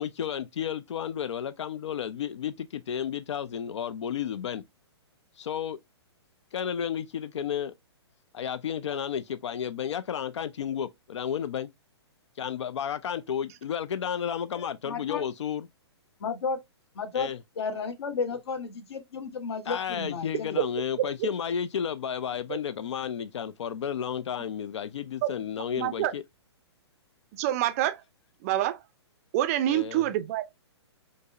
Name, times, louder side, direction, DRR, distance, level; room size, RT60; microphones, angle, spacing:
voice 1, 0.0-4.6 5.4-5.8 6.5-7.7 8.3-11.7 12.4-15.7 17.1-17.4 19.7-26.2 29.7-30.1, left 8 dB, 80° left, 0.4 m, -32 dB
voice 2, 14.5-15.2 16.2-16.6 16.9-17.3 17.6-20.6, left 5 dB, 65° left, 1.0 m, -33 dB
voice 3, 25.8-26.1 27.3-28.0 28.4-28.8 29.3-30.4, right 13 dB, 35° right, 0.4 m, -26 dB
5.1 x 2.0 x 2.4 m
hypercardioid pair, 145°, 15 cm